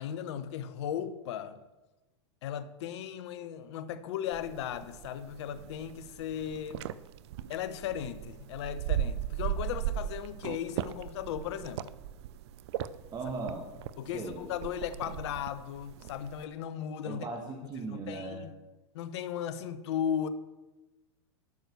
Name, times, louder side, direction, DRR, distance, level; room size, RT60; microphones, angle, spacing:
voice 1, 0.0-1.6 2.4-6.9 7.5-11.9 14.0-17.3 17.9-18.6 18.9-20.3, left 9 dB, 70° left, 1.0 m, -36 dB
sound 1, 4.3-16.4, right 11 dB, 65° right, 0.6 m, -38 dB
voice 2, 13.1-13.7 14.1-14.5 17.0-18.4, right 3 dB, 30° right, 1.9 m, -38 dB
12.0 x 6.2 x 6.9 m
hypercardioid pair, 110°, 15 cm